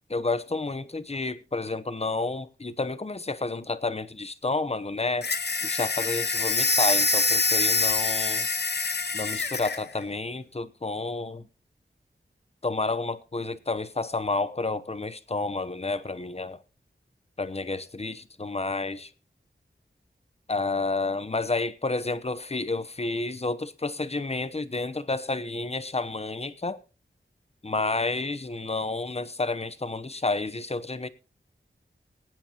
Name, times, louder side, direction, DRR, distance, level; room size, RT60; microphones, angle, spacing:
voice 1, 0.1-5.3 5.6-8.5 9.1-11.5 12.6-16.6 17.4-19.1 20.5-26.8 27.6-31.1, left 3 dB, 35° left, 0.9 m, -30 dB
sound 1, 5.2-9.8, left 3 dB, 60° left, 0.9 m, -25 dB
22.0 x 9.1 x 2.9 m
wide cardioid pair, 75°, 19 cm